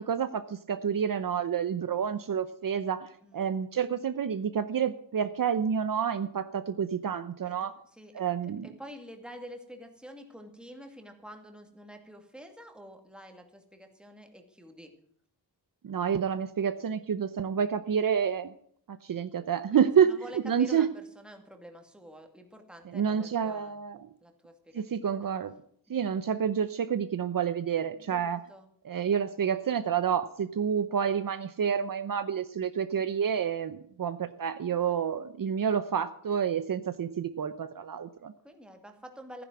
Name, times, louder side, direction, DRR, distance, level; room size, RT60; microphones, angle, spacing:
voice 1, 0.0-7.7 8.1-8.7 15.8-18.5 18.9-20.1 20.4-20.9 22.9-24.1 24.7-25.5 25.9-28.4 28.8-38.3, right 7 dB, 60° right, 11 dB, 0.8 m, -29 dB
voice 2, 7.4-15.0 20.0-23.8 24.2-25.3 25.9-26.0 28.0-28.7 38.4-39.4, equal, ahead, 4 dB, 2.3 m, -48 dB
15.0 x 10.0 x 6.2 m, 0.65 s
wide cardioid pair, 150°, 38 cm